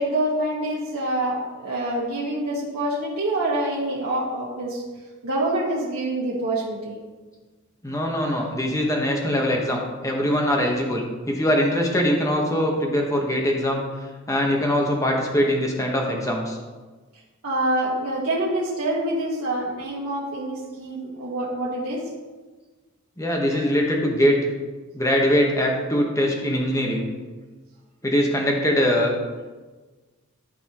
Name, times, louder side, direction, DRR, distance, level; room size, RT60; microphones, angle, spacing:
voice 1, 0.0-4.8 5.2-7.0 8.2-8.4 17.4-22.0 23.5-23.6, right 1 dB, 90° right, -6 dB, 1.5 m, -26 dB
voice 2, 7.8-13.8 14.3-16.6 23.2-24.4 24.9-27.1 28.0-29.1, equal, 15° left, 0 dB, 1.2 m, -22 dB
13.5 x 5.4 x 3.0 m, 1.3 s
head